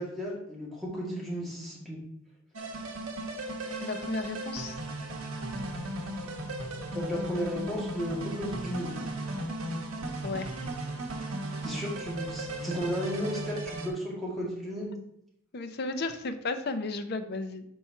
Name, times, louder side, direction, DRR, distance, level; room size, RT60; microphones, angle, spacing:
voice 1, 0.0-2.0 6.9-9.0 11.6-14.9, equal, ahead, -7 dB, 1.8 m, -34 dB
sound 1, 2.6-13.9, right 1 dB, 80° right, 1.0 m, -36 dB
voice 2, 3.8-4.8 10.2-10.5 15.5-17.6, left 3 dB, 45° left, 9 dB, 0.5 m, -34 dB
4.6 x 4.3 x 5.6 m, 0.76 s
head